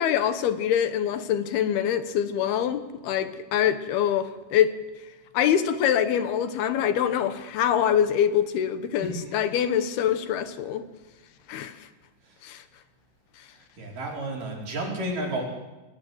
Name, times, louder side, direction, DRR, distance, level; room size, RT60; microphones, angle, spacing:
voice 1, 0.0-4.7 5.3-10.9 11.5-11.9 12.4-12.6, left 9 dB, 75° left, 10 dB, 3.1 m, -24 dB
voice 2, 13.8-15.4, right 1 dB, 55° right, -1 dB, 6.2 m, -31 dB
29.5 x 19.0 x 7.9 m, 1.1 s
omnidirectional pair, 4.6 m